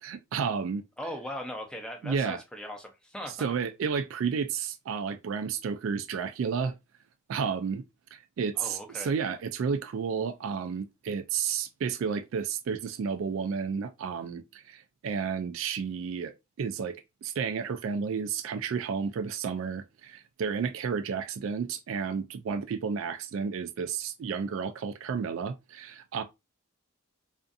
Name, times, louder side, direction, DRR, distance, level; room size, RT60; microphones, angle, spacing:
voice 1, 0.0-0.8 2.0-2.4 3.4-6.7 7.3-7.8 8.1-17.0 17.2-26.2, right 6 dB, 65° right, 0.3 m, -32 dB
voice 2, 1.0-3.5 8.6-9.1, equal, 5° left, 0.5 m, -39 dB
2.5 x 2.5 x 2.2 m
head